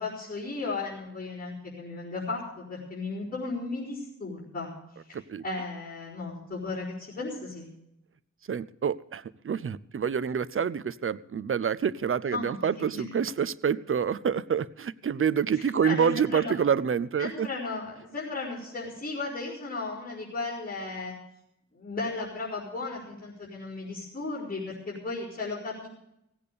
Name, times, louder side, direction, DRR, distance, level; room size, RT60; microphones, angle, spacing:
voice 1, 0.0-4.7 5.1-7.7 12.3-13.0 15.5-16.5 17.2-21.1 21.7-25.9, left 3 dB, 30° left, -9 dB, 4.7 m, -35 dB
voice 2, 5.1-5.4 8.5-17.5, right 7 dB, 45° right, 18 dB, 0.5 m, -27 dB
17.0 x 8.6 x 6.8 m, 0.83 s
wide cardioid pair, 80°, 29 cm